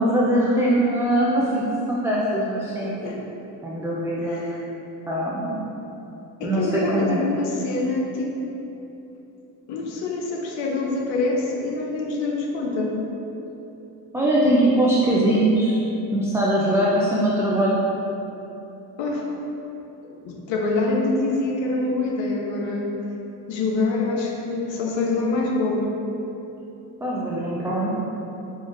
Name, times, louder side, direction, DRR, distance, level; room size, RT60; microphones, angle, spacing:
voice 1, 0.0-2.9 3.6-4.4 5.1-5.6 6.4-7.2 14.1-15.8 16.1-17.8 27.0-27.9, right 1 dB, 5° right, -7 dB, 0.3 m, -21 dB
voice 2, 2.8-3.2 4.2-4.6 6.4-8.3 9.7-12.9 19.0-19.3 20.0-22.9 23.5-25.9, left 3 dB, 70° left, 0 dB, 0.7 m, -25 dB
5.1 x 2.5 x 2.5 m, 3.0 s
supercardioid pair, 70°, 46 cm